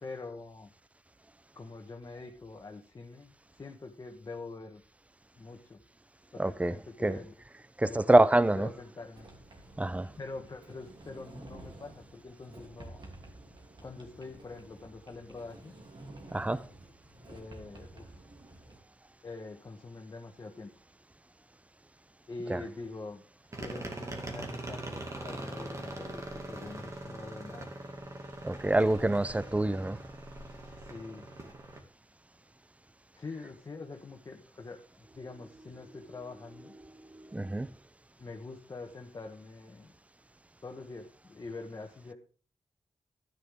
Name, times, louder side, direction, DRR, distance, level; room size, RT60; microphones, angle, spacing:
voice 1, 0.0-0.7 1.5-4.8 5.4-5.8 6.4-7.3 7.8-8.2 8.5-9.3 10.2-13.0 13.8-15.7 17.3-18.2 19.2-20.7 22.3-23.2 23.5-27.7 30.8-31.3 33.2-36.8 38.2-39.9 40.6-42.1, left 3 dB, 40° left, 1.4 m, -45 dB
voice 2, 6.4-6.7 7.0-7.2 7.8-8.7 9.8-10.1 16.3-16.6 22.5-22.6 28.4-30.0 37.1-37.7, right 2 dB, 15° right, 0.6 m, -26 dB
Sliding door, 9.1-18.8, right 2 dB, 55° right, 3.1 m, -51 dB
sound 1, 23.5-31.8, right 2 dB, 30° right, 2.2 m, -42 dB
12.5 x 10.0 x 3.6 m
wide cardioid pair, 90°, 10 cm